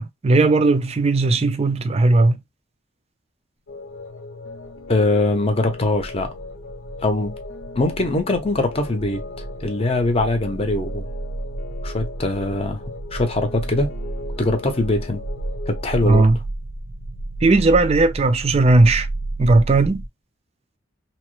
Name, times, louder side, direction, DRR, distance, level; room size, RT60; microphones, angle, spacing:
voice 1, 0.0-2.4 16.1-16.4 17.4-19.1 19.4-20.0, right 2 dB, 35° right, 0.4 m, -16 dB
sound 1, 3.7-16.2, left 3 dB, 85° left, 0.7 m, -38 dB
sound 2, 4.6-20.1, right 2 dB, 65° right, 0.8 m, -32 dB
voice 2, 4.9-6.3 7.0-7.4 7.8-9.2 9.6-11.1 11.8-12.8 13.1-13.9 14.4-15.2 15.7-16.3, left 2 dB, 30° left, 0.7 m, -22 dB
2.9 x 2.1 x 3.0 m
head